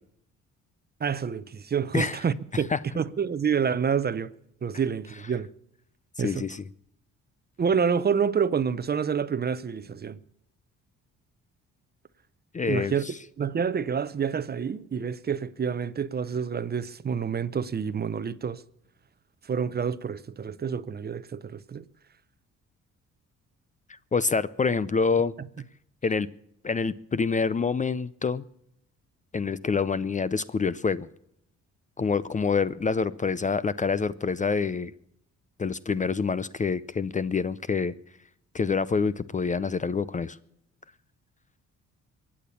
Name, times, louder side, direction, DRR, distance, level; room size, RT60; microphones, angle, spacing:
voice 1, 1.0-4.3 4.6-5.5 6.2-6.4 7.6-10.2 12.6-13.0 13.4-18.6 19.4-21.8 25.4-25.5, right 6 dB, 35° right, 0.7 m, -28 dB
voice 2, 6.2-6.6 12.5-12.9 24.1-25.3 26.0-26.3 26.6-28.4 29.3-31.1 32.0-34.9 35.6-37.9 38.5-40.4, left 5 dB, 25° left, 0.5 m, -26 dB
22.5 x 8.7 x 7.0 m
cardioid pair, 90°, 30 cm